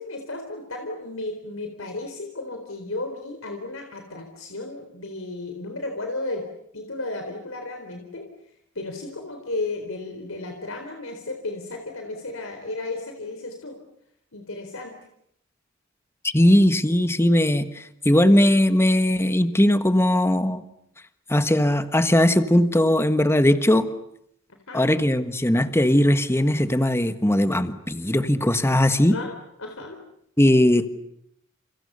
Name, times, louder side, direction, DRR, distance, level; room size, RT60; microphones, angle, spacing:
voice 1, 0.0-6.4 6.7-8.3 8.8-13.8 14.3-15.0 24.7-24.9 29.0-30.0, left 2 dB, 80° left, 4 dB, 4.1 m, -34 dB
voice 2, 16.3-20.6 21.3-23.9 24.7-29.1 30.4-31.0, left 1 dB, 15° left, 10 dB, 1.5 m, -19 dB
29.5 x 29.5 x 6.9 m, 0.74 s
head